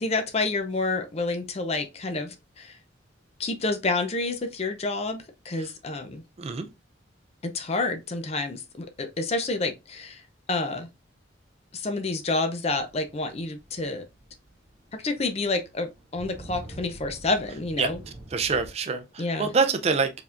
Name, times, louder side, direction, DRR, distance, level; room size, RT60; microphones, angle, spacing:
voice 1, 0.0-2.8 3.4-6.2 7.4-10.2 10.5-10.9 11.7-14.0 14.9-18.0 19.2-19.5, left 3 dB, 35° left, 0.5 m, -29 dB
sound 1, 12.8-18.7, right 1 dB, 15° right, 1.6 m, -45 dB
voice 2, 18.3-20.1, right 4 dB, 35° right, 0.4 m, -25 dB
4.7 x 3.5 x 2.4 m
head